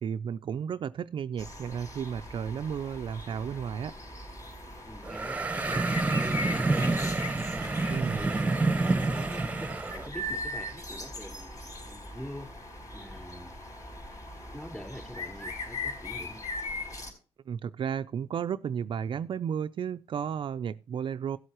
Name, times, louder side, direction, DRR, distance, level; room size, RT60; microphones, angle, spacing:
voice 1, 0.0-3.9 7.9-8.2 17.5-21.4, right 7 dB, 50° right, 0.4 m, -33 dB
sound 1, 1.4-17.1, left 2 dB, 35° left, 4.7 m, -40 dB
voice 2, 4.9-7.2 7.5-8.5 8.8-11.5 11.8-12.5 12.9-13.5 14.5-16.4, equal, 10° left, 4.3 m, -44 dB
sound 2, 5.0-10.1, right 3 dB, 15° right, 1.0 m, -28 dB
16.5 x 7.9 x 3.0 m
cardioid pair, 120°, 10 cm